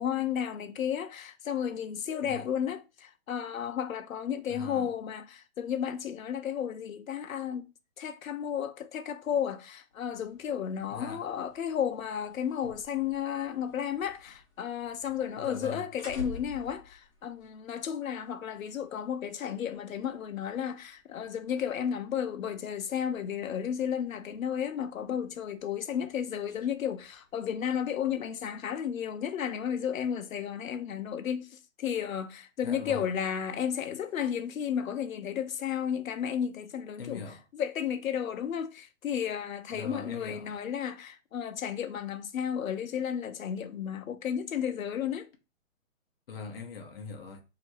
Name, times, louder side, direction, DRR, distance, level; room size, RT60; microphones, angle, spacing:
voice 1, 0.0-7.7 8.0-37.2 37.5-45.3, left 8 dB, 75° left, 0.7 m, -33 dB
voice 2, 4.5-4.9 10.9-11.3 15.4-15.9 32.6-33.0 37.0-37.4 39.7-40.5 46.3-47.4, left 4 dB, 45° left, 0.9 m, -41 dB
sound 1, 9.9-28.6, left 3 dB, 25° left, 1.0 m, -53 dB
2.9 x 2.8 x 4.5 m
hypercardioid pair, 170°, 40 cm